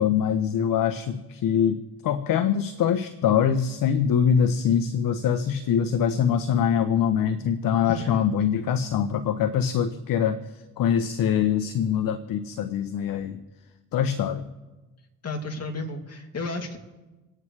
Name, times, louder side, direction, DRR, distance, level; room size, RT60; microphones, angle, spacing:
voice 1, 0.0-13.4 13.9-14.4, left 8 dB, 55° left, 11 dB, 1.0 m, -24 dB
voice 2, 7.8-8.7 15.2-16.8, left 2 dB, 40° left, 3 dB, 2.7 m, -33 dB
28.0 x 9.5 x 3.3 m, 1.2 s
hypercardioid pair, 65°, 39 cm